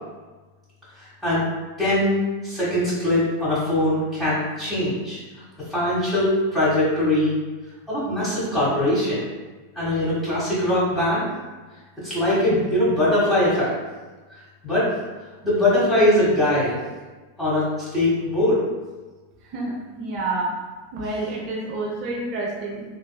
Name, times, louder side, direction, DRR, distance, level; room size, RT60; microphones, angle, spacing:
voice 1, 1.0-1.4 1.8-5.2 5.7-7.3 7.9-9.2 9.7-11.2 12.0-13.7 14.6-14.9 15.4-16.8 17.4-17.6 17.9-18.6, left 1 dB, 5° left, -11 dB, 1.4 m, -21 dB
voice 2, 19.4-20.5 20.9-22.8, right 2 dB, 40° right, -3 dB, 0.7 m, -28 dB
3.4 x 2.9 x 2.3 m, 1.3 s
figure-of-eight pair, 90°, 0 cm